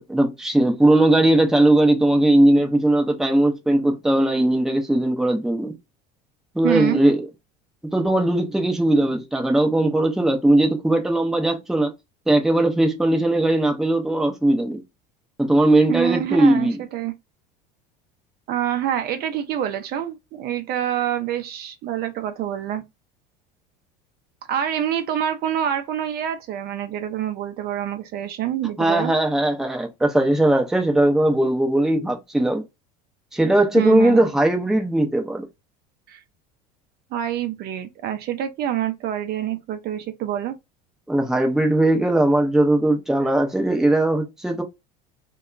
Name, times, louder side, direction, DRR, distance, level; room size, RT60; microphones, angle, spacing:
voice 1, 0.0-5.7 6.6-7.3 7.9-11.9 12.3-14.8 15.4-16.8 28.8-32.6 33.3-35.4 41.1-44.6, right 1 dB, ahead, 0.5 m, -19 dB
voice 2, 6.6-7.0 15.9-17.1 18.5-22.8 24.5-29.1 33.7-34.3 36.1-36.2 37.1-40.5, right 10 dB, 50° right, 0.5 m, -26 dB
2.7 x 2.2 x 2.3 m
supercardioid pair, 95°, 21 cm